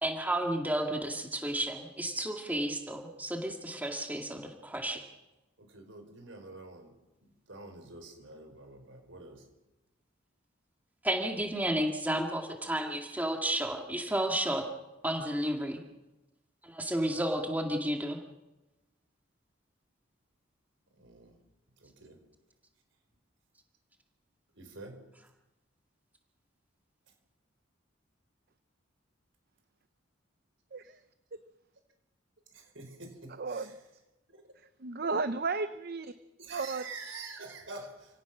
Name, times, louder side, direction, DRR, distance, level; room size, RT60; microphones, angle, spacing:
voice 1, 0.0-5.0 11.0-14.6 15.0-15.8 16.6-18.2, right 1 dB, 10° right, 3 dB, 2.1 m, -32 dB
voice 2, 5.6-7.0 7.3-9.4 20.9-21.4 21.8-22.2 24.5-25.0 30.8-31.0 32.5-33.8 34.3-34.4 36.4-38.2, right 3 dB, 70° right, 5 dB, 4.9 m, -47 dB
voice 3, 33.4-33.7 34.8-36.1 36.5-36.8, right 4 dB, 50° right, 11 dB, 0.7 m, -33 dB
28.5 x 17.5 x 6.1 m, 1.0 s
head